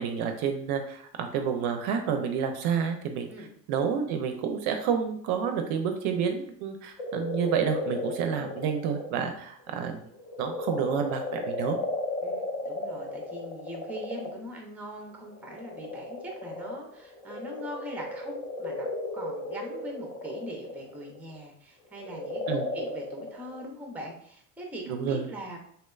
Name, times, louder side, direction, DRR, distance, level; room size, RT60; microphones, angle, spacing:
voice 1, 0.0-3.3 3.7-10.1 10.4-11.8 22.5-22.7 24.9-25.3, right 7 dB, 55° right, 5 dB, 0.5 m, -29 dB
sound 1, 7.0-9.1 9.6-14.5 15.3-21.4 22.0-23.6, left 2 dB, 55° left, 0.7 m, -35 dB
voice 2, 12.2-18.9 19.1-25.6, equal, 5° right, 2 dB, 0.5 m, -41 dB
2.8 x 2.1 x 2.3 m, 0.63 s
hypercardioid pair, 75°, 45 cm